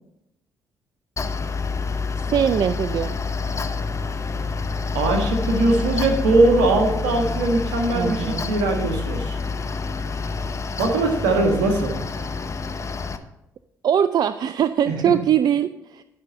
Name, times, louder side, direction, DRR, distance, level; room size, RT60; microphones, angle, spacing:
Mechanical fan, 1.2-13.2, left 4 dB, 35° left, 0.8 m, -27 dB
voice 1, 2.3-3.2 7.9-8.6 13.8-16.0, right 9 dB, 50° right, 12 dB, 0.4 m, -21 dB
voice 2, 4.9-9.4 10.8-11.9 14.9-15.1, right 2 dB, 80° right, 2 dB, 1.7 m, -21 dB
11.5 x 5.4 x 5.8 m, 0.88 s
hypercardioid pair, 45°, 9 cm